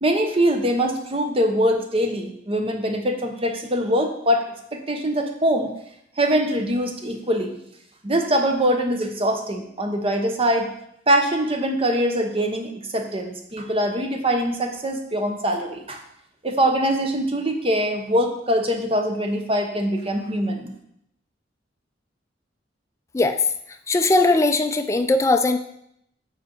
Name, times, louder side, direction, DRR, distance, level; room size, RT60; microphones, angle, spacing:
voice 1, 0.0-4.4 4.7-5.7 6.2-7.6 8.0-10.7 11.1-16.0 16.4-20.7, equal, 30° right, 4 dB, 0.9 m, -23 dB
voice 2, 23.9-25.6, left 2 dB, 15° left, 7 dB, 0.4 m, -19 dB
7.6 x 4.4 x 4.4 m, 0.74 s
head